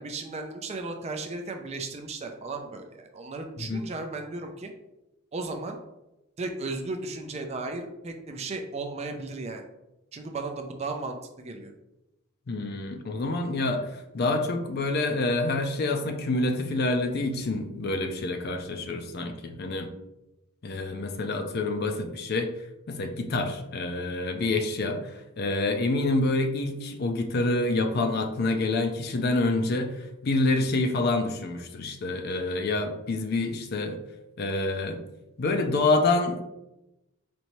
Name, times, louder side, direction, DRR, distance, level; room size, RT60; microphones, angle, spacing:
voice 1, 0.0-4.7 5.3-5.8 6.4-9.6 10.1-11.7, right 3 dB, 30° right, 4 dB, 0.4 m, -35 dB
voice 2, 12.5-19.9 20.6-22.5 22.9-34.0 34.4-35.0 35.4-36.4, left 2 dB, 45° left, 6 dB, 0.4 m, -27 dB
4.3 x 2.7 x 3.0 m, 0.94 s
head